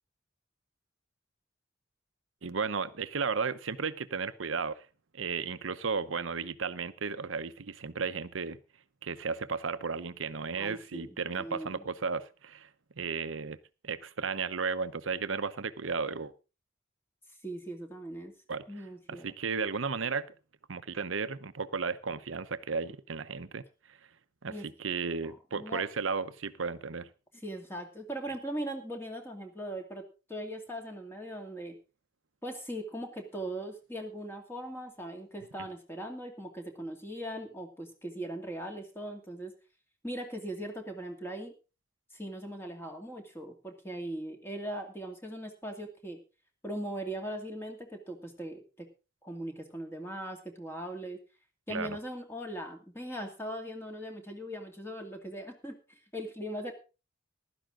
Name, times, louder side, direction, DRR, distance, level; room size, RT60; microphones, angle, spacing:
voice 1, 2.4-4.8 5.1-8.6 9.0-12.7 13.0-13.6 13.8-16.3 18.5-18.6 19.1-20.3 20.7-23.7 24.4-27.1 51.7-52.0, right 5 dB, 80° right, 0.8 m, -34 dB
voice 2, 10.6-11.8 17.4-18.3 18.7-19.3 24.5-24.7 25.5-25.9 27.4-30.0 30.3-31.8 32.4-39.5 40.0-41.5 42.1-46.2 46.6-48.9 49.2-51.2 51.7-56.7, right 1 dB, 10° left, 2.4 m, -40 dB
15.0 x 12.0 x 3.8 m
head